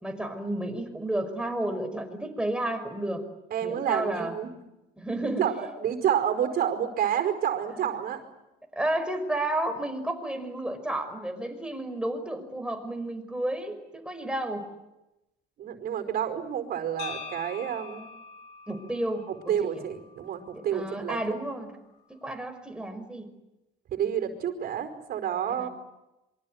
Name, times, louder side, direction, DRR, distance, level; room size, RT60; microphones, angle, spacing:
voice 1, 0.0-3.2 3.6-4.4 5.0-5.5 7.8-7.9 8.7-14.7 18.7-19.8 20.5-21.7 22.1-23.3 25.5-25.7, right 1 dB, 5° right, 6 dB, 5.6 m, -32 dB
voice 2, 3.5-4.5 5.4-8.2 15.6-18.0 19.3-21.2 23.9-25.7, right 9 dB, 65° right, 7 dB, 4.9 m, -29 dB
sound 1, 17.0-21.1, left 5 dB, 85° left, 5.0 m, -44 dB
27.0 x 24.5 x 8.0 m, 0.94 s
cardioid pair, 110°, 17 cm